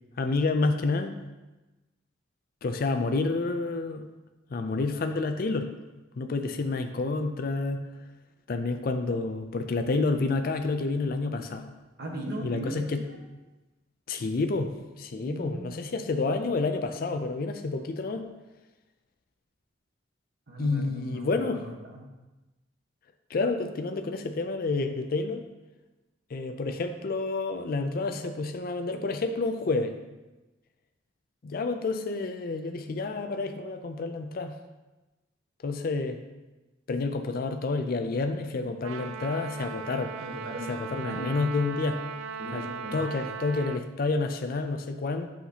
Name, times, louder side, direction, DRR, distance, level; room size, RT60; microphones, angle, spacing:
voice 1, 0.2-1.1 2.6-4.0 4.5-5.7 6.2-7.8 8.5-11.7 12.4-13.0 14.1-18.3 20.6-21.6 23.3-25.4 26.3-30.0 31.4-34.5 35.6-36.2 36.9-40.2 40.7-42.0 42.5-42.7 42.9-45.3, left 3 dB, 50° left, 6 dB, 0.4 m, -29 dB
voice 2, 12.0-13.2 15.1-15.9 20.5-22.0 40.2-41.4 42.4-43.1, right 1 dB, 50° right, -1 dB, 1.3 m, -38 dB
Trumpet, 38.8-43.8, right 6 dB, 80° right, 0.3 m, -38 dB
8.2 x 5.8 x 2.8 m, 1.1 s
head